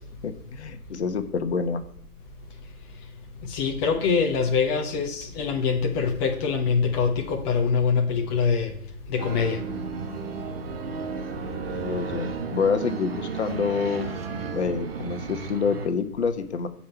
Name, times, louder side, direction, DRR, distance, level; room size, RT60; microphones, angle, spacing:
voice 1, 0.2-1.8 11.7-14.1 14.5-16.7, left 5 dB, 50° left, 1.3 m, -27 dB
voice 2, 3.4-8.7 9.1-9.6, left 5 dB, 20° left, 1.0 m, -24 dB
sound 1, 9.2-15.9, right 5 dB, 40° right, 1.6 m, -33 dB
16.5 x 5.7 x 4.5 m
figure-of-eight pair, 130°, 44 cm